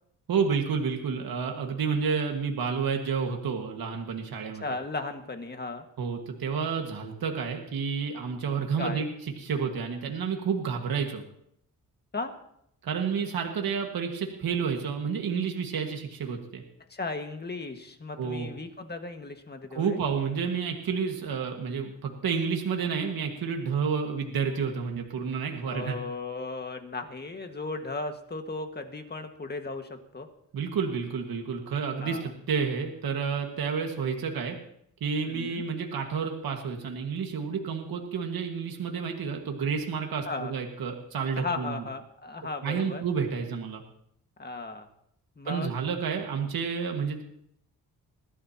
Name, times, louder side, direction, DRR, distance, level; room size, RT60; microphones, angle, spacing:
voice 1, 0.3-4.6 6.0-9.1 9.4-11.2 12.8-16.6 18.2-18.5 19.7-26.0 30.5-34.6 35.0-41.8 42.6-43.8 45.5-47.2, right 6 dB, 70° right, 3 dB, 1.8 m, -30 dB
voice 2, 4.5-5.9 8.8-9.1 12.1-12.3 16.9-20.0 25.7-30.3 32.0-32.3 35.3-35.6 40.3-40.5 41.4-43.0 44.4-44.9 45.4-45.7, left 3 dB, 25° left, 6 dB, 1.8 m, -36 dB
21.5 x 14.5 x 2.9 m, 0.73 s
cardioid pair, 95°, 38 cm